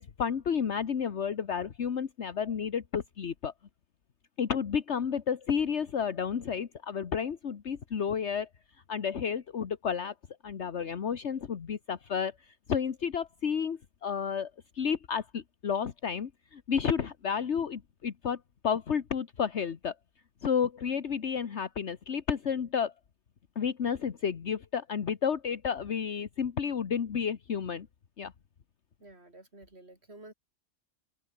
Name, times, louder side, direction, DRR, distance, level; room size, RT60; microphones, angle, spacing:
voice 1, 0.0-3.5 4.4-8.5 8.9-10.1 10.4-12.3 12.7-14.5 14.7-18.4 18.6-19.9 20.4-22.9 23.6-27.9 28.2-28.3, left 7 dB, 60° left, 1.5 m, -31 dB
voice 2, 29.0-30.3, right 2 dB, 55° right, 6.4 m, -51 dB
open air
omnidirectional pair, 1.3 m